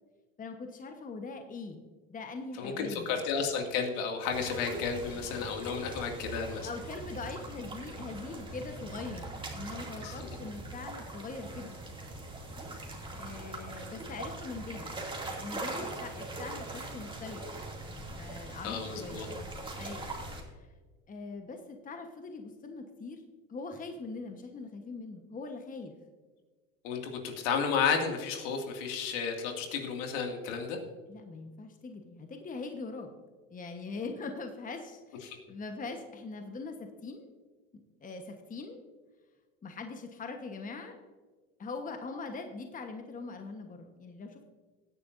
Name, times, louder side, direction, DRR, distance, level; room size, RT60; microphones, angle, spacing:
voice 1, 0.4-1.8 2.1-3.1 6.6-11.7 13.1-14.9 15.2-17.4 18.1-19.3 19.8-20.7 21.1-23.2 23.5-25.9 31.1-33.1 33.5-37.3 38.0-38.8 39.6-40.9 41.6-44.5, left 4 dB, 20° left, 5 dB, 1.2 m, -42 dB
voice 2, 2.6-6.7 10.0-10.3 18.6-19.3 26.8-30.8 35.2-35.4, left 6 dB, 65° left, 3 dB, 2.4 m, -32 dB
sound 1, 4.3-20.4, right 2 dB, 10° right, 2.6 m, -41 dB
17.0 x 9.7 x 2.7 m, 1.4 s
hypercardioid pair, 100°, 39 cm